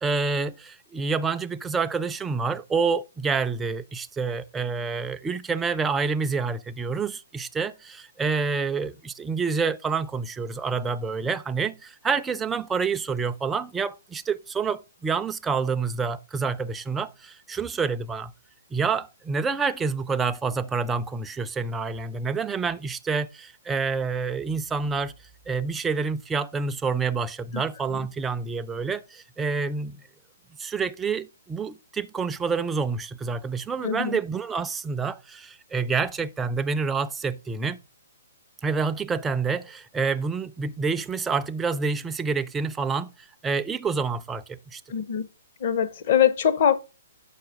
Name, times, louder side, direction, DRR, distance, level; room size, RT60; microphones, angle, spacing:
voice 1, 0.0-18.3 18.7-25.1 25.5-30.0 30.6-37.8 38.6-43.1 43.4-44.8, right 5 dB, 10° right, 0.4 m, -28 dB
voice 2, 33.8-34.2 44.9-45.3 45.6-46.8, left 9 dB, 50° left, 0.9 m, -22 dB
6.5 x 5.9 x 4.9 m
hypercardioid pair, 140°, 0 cm